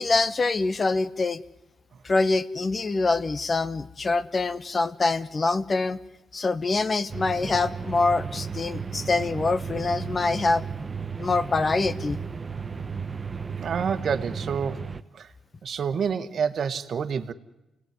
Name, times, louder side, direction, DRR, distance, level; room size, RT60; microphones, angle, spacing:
voice 1, 0.0-1.4 2.0-6.0 6.3-10.7 11.2-12.2, left 3 dB, 35° left, 1.2 m, -25 dB
sound 1, 7.1-15.0, right 5 dB, 30° right, 1.0 m, -34 dB
voice 2, 13.6-15.3 15.6-17.3, right 6 dB, 55° right, 1.5 m, -28 dB
28.5 x 18.0 x 9.7 m
cardioid pair, 90°, 0 cm